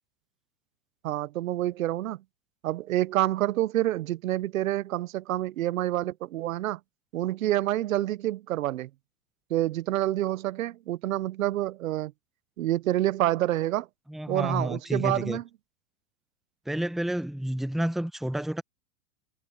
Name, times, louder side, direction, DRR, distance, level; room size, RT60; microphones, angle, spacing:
voice 1, 1.0-2.2 2.6-6.8 7.1-8.9 9.5-12.1 12.6-13.9 14.3-15.4, right 14 dB, 80° right, 1.0 m, -27 dB
voice 2, 14.1-15.4 16.7-18.6, right 1 dB, ahead, 1.0 m, -30 dB
hypercardioid pair, 110°, 40 cm